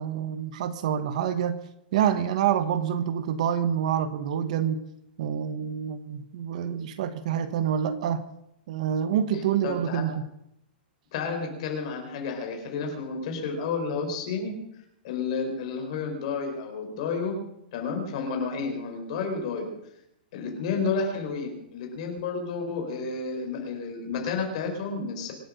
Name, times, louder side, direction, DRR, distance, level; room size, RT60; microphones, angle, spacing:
voice 1, 0.0-1.6 1.9-4.8 5.2-8.3 8.7-10.2, right 9 dB, 45° right, 12 dB, 1.1 m, -27 dB
voice 2, 9.6-10.0 11.1-14.5 15.0-17.3 17.7-19.7 20.3-25.3, left 5 dB, 40° left, 3 dB, 4.7 m, -31 dB
25.0 x 8.6 x 6.5 m, 0.78 s
supercardioid pair, 175°, 5 cm